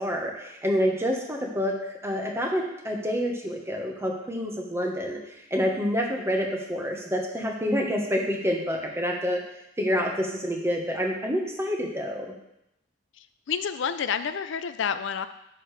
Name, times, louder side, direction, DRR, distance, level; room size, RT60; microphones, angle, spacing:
voice 1, 0.0-1.7 2.0-5.2 5.5-9.4 9.8-12.3, equal, 15° right, 0 dB, 1.2 m, -27 dB
voice 2, 13.2-15.3, left 7 dB, 75° left, 11 dB, 0.4 m, -29 dB
11.0 x 6.6 x 3.3 m, 0.85 s
head